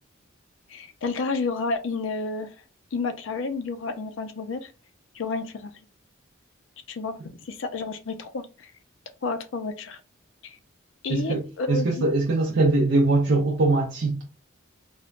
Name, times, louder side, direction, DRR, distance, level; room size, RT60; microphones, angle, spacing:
voice 1, 0.7-2.5 2.9-4.7 5.1-5.7 6.9-7.2 7.4-8.7 9.2-10.0 10.4-10.6 11.0-12.1, left 3 dB, 70° left, 0.4 m, -30 dB
voice 2, 11.1-11.4 11.7-14.2, right 2 dB, 65° right, 0.5 m, -22 dB
3.1 x 2.0 x 2.4 m
head